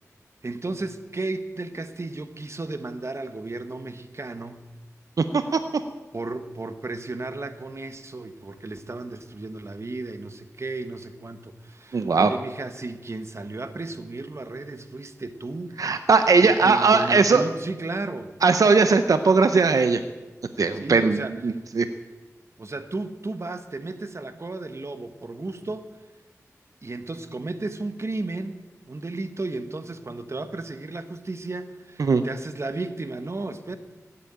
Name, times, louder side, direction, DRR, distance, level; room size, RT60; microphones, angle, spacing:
voice 1, 0.4-4.6 6.1-15.8 16.4-18.4 20.8-21.6 22.6-25.9 26.8-33.8, right 2 dB, 55° right, 9 dB, 1.3 m, -34 dB
voice 2, 11.9-12.3 15.8-17.4 18.4-20.0 20.6-21.9 32.0-32.2, right 4 dB, 85° right, 9 dB, 0.6 m, -19 dB
16.5 x 8.4 x 8.8 m, 1.2 s
wide cardioid pair, 50°, 6 cm